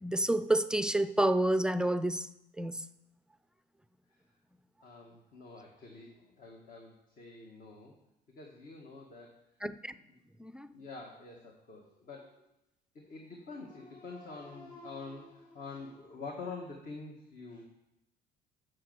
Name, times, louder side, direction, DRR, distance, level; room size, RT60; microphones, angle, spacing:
voice 1, 0.0-2.3 2.6-2.9 9.6-9.9 10.4-10.7, right 1 dB, 5° right, 0.4 m, -29 dB
voice 2, 4.8-8.0 8.3-10.2 10.7-12.5 12.9-17.6, left 3 dB, 50° left, 1.7 m, -47 dB
9.6 x 6.7 x 8.0 m
cardioid pair, 110°, 17 cm